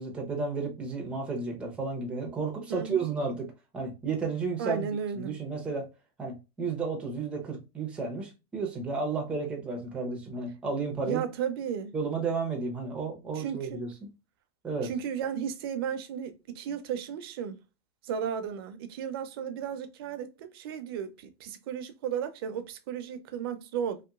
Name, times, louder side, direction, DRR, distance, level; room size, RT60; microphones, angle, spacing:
voice 1, 0.0-3.5 3.7-5.9 6.2-11.2 11.9-13.9 14.6-14.9, right 4 dB, 5° right, 0.6 m, -32 dB
voice 2, 2.7-3.1 4.6-5.4 11.0-11.9 13.3-13.8 14.8-17.6 18.0-24.0, right 8 dB, 60° right, 0.5 m, -34 dB
3.0 x 2.9 x 2.3 m
supercardioid pair, 180°, 14 cm